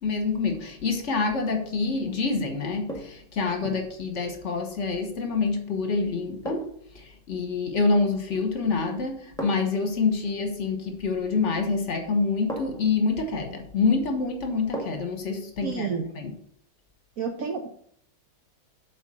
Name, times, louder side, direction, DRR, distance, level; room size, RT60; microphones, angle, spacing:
voice 1, 0.0-16.3, left 4 dB, 45° left, 5 dB, 1.3 m, -27 dB
sound 1, 1.3-1.7 2.9-3.3 5.4-5.6 6.4-6.9 8.2-8.6 9.4-9.8 11.5-11.6 12.5-13.0 14.7-15.2 15.6-15.7, right 1 dB, ahead, 1.3 m, -37 dB
voice 2, 15.6-16.0 17.2-17.7, right 6 dB, 60° right, 3 dB, 1.0 m, -29 dB
7.9 x 4.4 x 6.3 m, 0.64 s
omnidirectional pair, 2.0 m